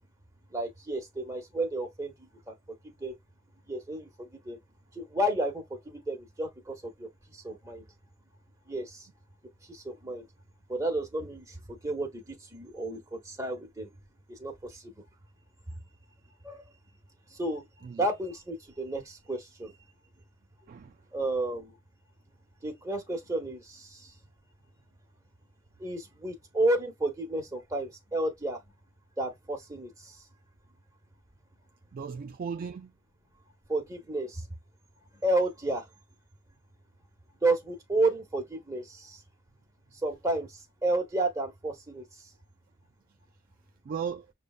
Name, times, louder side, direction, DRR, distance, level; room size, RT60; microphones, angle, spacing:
voice 1, 0.5-3.2 3.7-4.1 4.4-4.6 4.9-7.8 8.7-9.1 9.7-10.3 10.7-13.9 14.3-14.9 16.4-16.6 17.3-17.6 17.9-19.8 21.1-21.7 22.6-24.2 25.8-28.6 29.2-30.2 33.7-34.4 35.2-35.9 37.4-39.2 40.0-42.1, right 2 dB, 15° right, 1.1 m, -32 dB
voice 2, 20.7-21.0 31.9-32.9 43.8-44.3, right 6 dB, 45° right, 0.3 m, -36 dB
6.5 x 2.2 x 2.4 m
head